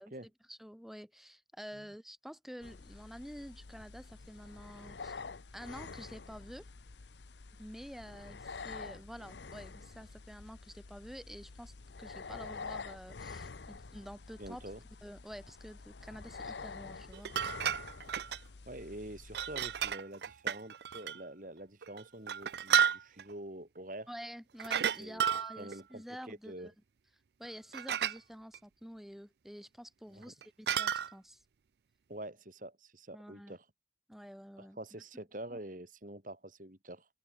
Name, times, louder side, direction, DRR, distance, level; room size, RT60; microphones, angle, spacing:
voice 1, 0.0-5.2 5.5-6.7 7.5-11.7 12.0-14.7 15.0-17.3 24.1-26.7 27.4-31.4 33.1-33.6 34.1-35.0 35.5-35.6, equal, ahead, 6.4 m, -49 dB
sound 1, 2.6-19.9, left 4 dB, 80° left, 0.8 m, -48 dB
voice 2, 14.4-14.8 18.7-24.1 25.0-25.3 25.6-26.7 30.1-30.3 32.1-33.6 34.6-37.1, right 1 dB, 50° right, 4.1 m, -46 dB
sound 2, 17.1-18.4 19.3-21.2 21.8-23.3 24.6-25.8 27.5-27.6 27.7-28.2 28.5-28.6 30.2-31.1, right 8 dB, 70° right, 0.5 m, -32 dB
open air
head